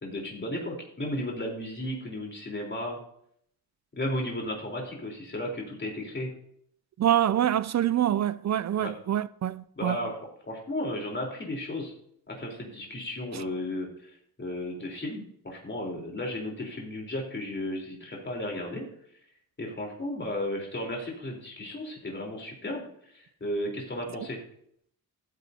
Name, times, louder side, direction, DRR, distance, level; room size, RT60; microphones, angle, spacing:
voice 1, 0.0-3.0 4.0-6.3 8.8-8.9 9.7-10.2 10.5-11.9 12.3-14.1 14.4-18.9 19.6-22.8 23.1-24.4, left 1 dB, 30° left, 3.9 m, -34 dB
voice 2, 7.0-10.0, right 11 dB, 45° right, 0.4 m, -25 dB
14.0 x 9.6 x 2.8 m
cardioid pair, 110°, 38 cm